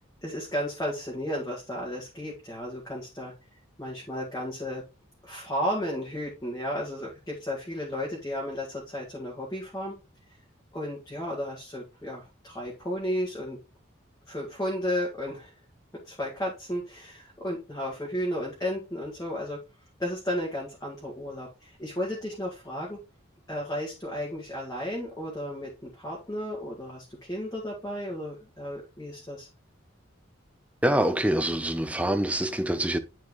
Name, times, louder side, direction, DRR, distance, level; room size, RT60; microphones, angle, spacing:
voice 1, 0.2-3.3 3.8-4.8 5.2-10.0 10.7-13.6 14.3-15.5 16.0-19.6 20.0-23.0 23.5-29.5, equal, 15° left, 1.9 m, -33 dB
voice 2, 30.8-33.0, right 1 dB, 5° right, 0.6 m, -25 dB
9.8 x 4.6 x 3.1 m
head